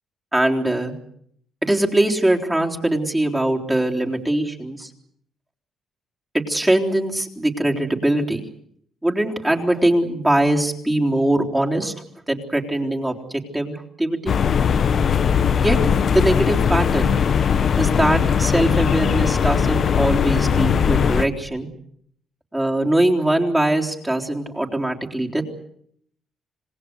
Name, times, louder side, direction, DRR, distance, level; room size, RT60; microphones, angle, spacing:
voice 1, 0.3-0.9 1.6-4.9 6.3-8.4 9.0-11.9 12.3-14.4 15.6-15.8 16.1-17.2 17.8-21.7 22.5-25.4, right 1 dB, 10° right, 0 dB, 3.8 m, -21 dB
sound 1, 14.3-21.2, left 7 dB, 55° left, 1.3 m, -19 dB
27.0 x 19.0 x 8.1 m, 0.68 s
cardioid pair, 90°, 0 cm